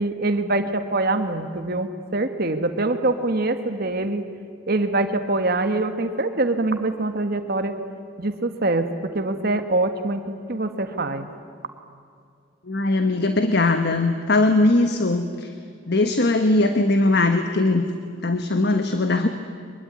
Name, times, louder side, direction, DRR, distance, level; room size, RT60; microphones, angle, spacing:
voice 1, 0.0-4.2 4.7-7.7 8.2-10.2 10.5-11.3, right 2 dB, 50° right, 8 dB, 1.5 m, -24 dB
voice 2, 12.6-15.5 15.9-17.8 18.2-19.3, left 2 dB, 55° left, 7 dB, 1.3 m, -20 dB
24.0 x 22.5 x 9.6 m, 2.3 s
head